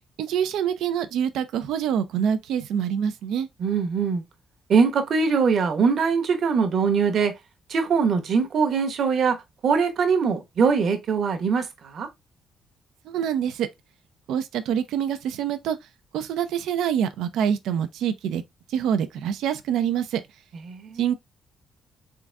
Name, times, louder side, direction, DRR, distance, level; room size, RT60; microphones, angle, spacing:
voice 1, 0.2-3.5 13.0-13.7 14.3-15.8 16.1-18.4 18.7-20.2 21.0-21.1, right 9 dB, 85° right, 0.6 m, -25 dB
voice 2, 3.6-4.2 4.7-7.3 7.7-9.4 9.6-12.1 20.7-21.0, right 5 dB, 60° right, 1.1 m, -22 dB
3.9 x 3.6 x 3.3 m
cardioid pair, 90°, 0 cm